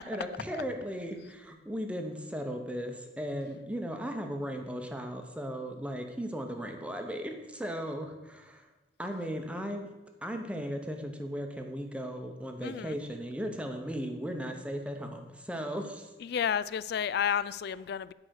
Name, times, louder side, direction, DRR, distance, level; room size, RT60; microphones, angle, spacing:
voice 1, 0.1-8.7 9.0-9.9 10.2-16.1, equal, 5° right, 4 dB, 0.9 m, -36 dB
voice 2, 12.6-13.0 16.2-18.1, left 8 dB, 55° left, 18 dB, 0.3 m, -31 dB
10.5 x 4.9 x 6.4 m, 1.1 s
head